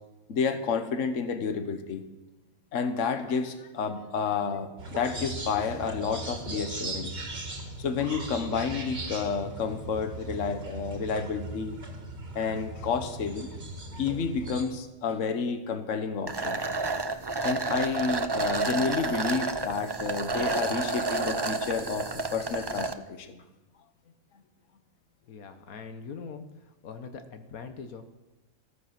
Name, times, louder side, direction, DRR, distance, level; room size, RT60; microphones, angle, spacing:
voice 1, 0.3-2.0 2.7-7.2 7.8-11.8 12.3-13.5 14.0-16.6 17.4-23.4, left 5 dB, 65° left, 8 dB, 1.4 m, -30 dB
sound 1, 4.8-14.6, right 2 dB, 45° right, 2.1 m, -39 dB
sound 2, 16.3-22.9, right 3 dB, 30° right, 0.5 m, -30 dB
voice 2, 25.2-28.1, left 5 dB, 85° left, 7 dB, 1.5 m, -42 dB
14.5 x 14.5 x 6.0 m, 1.1 s
omnidirectional pair, 1.5 m